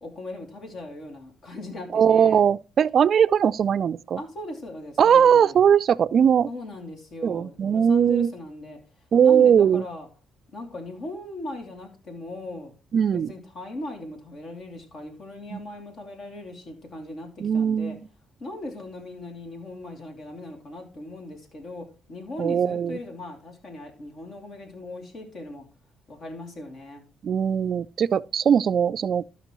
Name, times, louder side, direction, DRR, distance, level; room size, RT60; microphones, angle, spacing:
voice 1, 0.0-2.4 4.2-5.6 6.5-8.8 9.2-10.1 10.5-12.7 13.1-17.9 18.4-25.7 26.1-27.0, left 1 dB, 55° left, 2.8 m, -38 dB
voice 2, 1.9-4.2 5.0-6.5 7.2-8.3 9.1-9.8 12.9-13.3 15.5-15.6 17.4-18.0 22.4-23.0 27.2-29.2, right 8 dB, 55° right, 0.3 m, -20 dB
13.0 x 5.9 x 3.0 m
cardioid pair, 90°, 0 cm